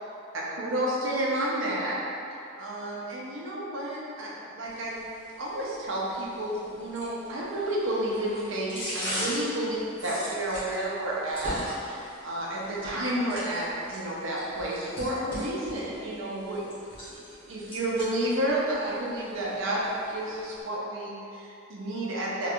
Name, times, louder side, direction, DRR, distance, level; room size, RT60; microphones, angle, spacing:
voice 1, 0.3-2.0 2.6-4.9 5.4-9.8 10.0-16.7 17.1-17.2 17.5-22.5, right 1 dB, 75° right, -5 dB, 0.6 m, -31 dB
sound 1, 4.7-20.6, equal, 25° left, 1.1 m, -41 dB
3.2 x 3.1 x 2.5 m, 2.6 s
head